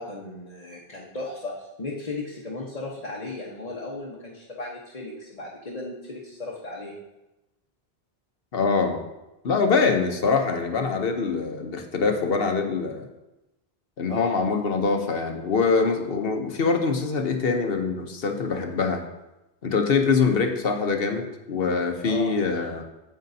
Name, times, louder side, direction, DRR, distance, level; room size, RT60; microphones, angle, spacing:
voice 1, 0.0-7.0 14.1-14.4 22.0-22.3, left 2 dB, 40° left, -5 dB, 1.2 m, -36 dB
voice 2, 8.5-9.0 9.4-13.1 14.0-19.0 19.6-22.8, left 4 dB, 65° left, 5 dB, 1.1 m, -24 dB
9.2 x 8.3 x 2.7 m, 0.98 s
omnidirectional pair, 1.1 m